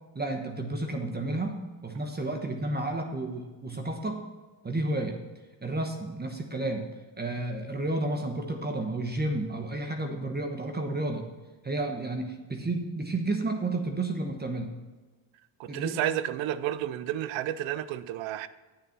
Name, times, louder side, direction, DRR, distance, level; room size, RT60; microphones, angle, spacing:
voice 1, 0.1-4.2 4.6-5.2 5.6-6.9 7.2-11.3 11.6-14.7 15.7-16.0, right 2 dB, 20° right, 1.2 m, -31 dB
voice 2, 15.6-18.5, right 12 dB, 85° right, 0.7 m, -31 dB
10.0 x 6.8 x 5.9 m
cardioid pair, 80°, 45 cm